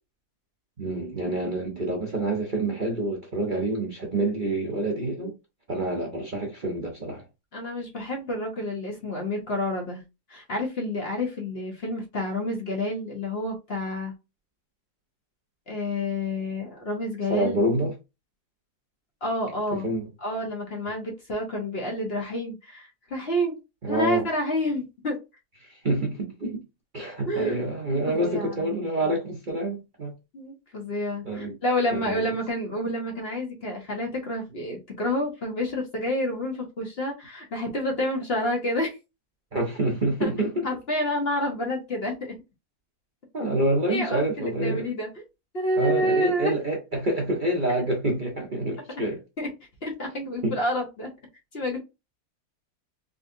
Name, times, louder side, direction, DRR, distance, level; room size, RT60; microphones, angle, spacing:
voice 1, 0.8-5.3 5.7-7.2 17.3-18.0 19.7-20.1 23.8-24.3 25.6-26.6 26.9-30.1 31.2-31.5 31.9-32.2 39.5-40.7 43.3-44.9 45.8-49.2 50.4-50.6, right 1 dB, 40° right, 0.9 m, -27 dB
voice 2, 7.5-10.0 10.3-14.1 15.7-17.6 19.2-19.9 20.2-23.6 23.9-25.2 27.3-27.6 28.1-28.7 30.3-39.0 40.2-40.3 40.6-42.3 43.9-45.2 45.5-46.5 48.9-49.0 49.4-49.5 49.8-51.1 51.5-51.8, left 1 dB, 45° left, 1.2 m, -29 dB
3.8 x 3.2 x 2.5 m
omnidirectional pair, 1.7 m